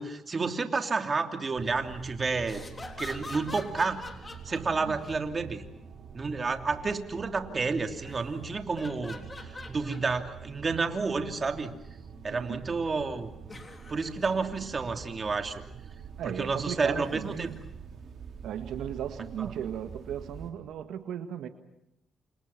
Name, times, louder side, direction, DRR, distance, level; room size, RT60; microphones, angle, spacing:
voice 1, 0.0-2.7 3.0-4.0 4.4-5.7 6.1-11.7 12.2-13.3 13.9-15.6 16.2-17.5 19.4-19.5, right 4 dB, 35° right, 5 dB, 3.0 m, -30 dB
sound 1, 1.6-20.5, right 6 dB, 60° right, 4.0 m, -46 dB
sound 2, 2.4-5.2 7.9-8.3 8.8-10.3 10.9-11.0 13.4-14.2 16.9-17.7 18.7-18.8, left 3 dB, 25° left, 3.8 m, -45 dB
voice 2, 12.3-12.6 16.2-17.5 18.4-21.5, right 9 dB, 80° right, 8 dB, 1.7 m, -36 dB
29.5 x 28.5 x 5.9 m, 0.83 s
cardioid pair, 90°, 0 cm